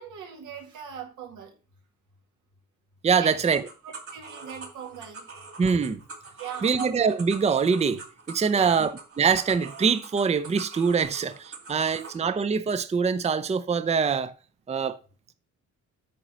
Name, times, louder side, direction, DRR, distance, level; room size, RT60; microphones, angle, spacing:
voice 1, 0.0-1.5 3.2-3.5 3.8-5.2 6.4-6.9 8.5-8.8 11.6-11.7, right 7 dB, 85° right, 2.3 m, -40 dB
voice 2, 3.0-3.6 5.6-6.0 6.6-8.0 8.3-8.9 9.2-14.3 14.7-15.0, right 5 dB, 20° right, 0.6 m, -24 dB
sound 1, 3.5-12.2, right 3 dB, 45° right, 2.5 m, -43 dB
8.7 x 3.9 x 6.1 m
cardioid pair, 90°, 30 cm